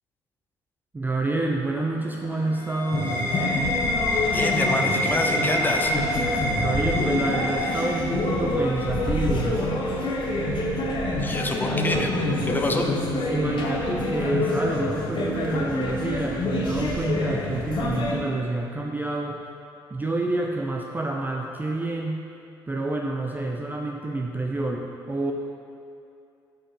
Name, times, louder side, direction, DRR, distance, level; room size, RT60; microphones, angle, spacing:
voice 1, 0.9-3.4 6.6-9.6 13.3-19.4 19.9-22.2 22.7-25.3, right 2 dB, 15° right, 1 dB, 0.4 m, -28 dB
sound 1, 1.1-7.6, left 3 dB, 65° left, 1.0 m, -45 dB
sound 2, 2.1-8.6, left 1 dB, 85° right, 1.1 m, -27 dB
sound 3, 2.9-18.2, left 1 dB, 40° left, 1.1 m, -27 dB
voice 2, 4.3-5.9 11.2-12.9, left 2 dB, 15° left, 2 dB, 0.8 m, -27 dB
12.5 x 4.4 x 3.0 m, 2.6 s
figure-of-eight pair, 55°, 13 cm